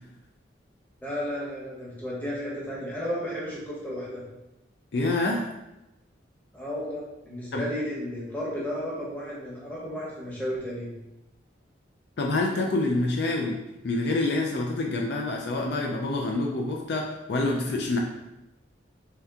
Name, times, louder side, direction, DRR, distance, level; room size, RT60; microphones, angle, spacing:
voice 1, 1.0-4.2 6.5-10.9, equal, 10° left, -6 dB, 0.9 m, -33 dB
voice 2, 4.9-5.4 7.5-7.6 12.2-18.0, left 2 dB, 60° left, 0 dB, 0.4 m, -27 dB
3.3 x 2.8 x 3.6 m, 0.94 s
head